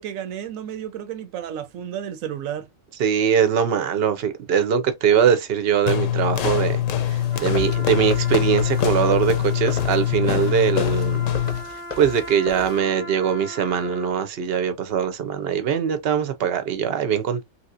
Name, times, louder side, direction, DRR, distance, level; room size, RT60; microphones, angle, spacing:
voice 1, 0.0-2.7, right 9 dB, 80° right, 1.0 m, -32 dB
voice 2, 3.0-6.8 7.1-11.2 12.0-17.4, right 8 dB, 55° right, 0.8 m, -22 dB
sound 1, 5.9-11.7, left 11 dB, 70° left, 0.9 m, -23 dB
sound 2, 6.4-12.8, left 4 dB, 40° left, 0.8 m, -36 dB
Trumpet, 7.3-14.3, equal, 10° right, 0.9 m, -39 dB
3.3 x 2.8 x 2.5 m
omnidirectional pair, 1.4 m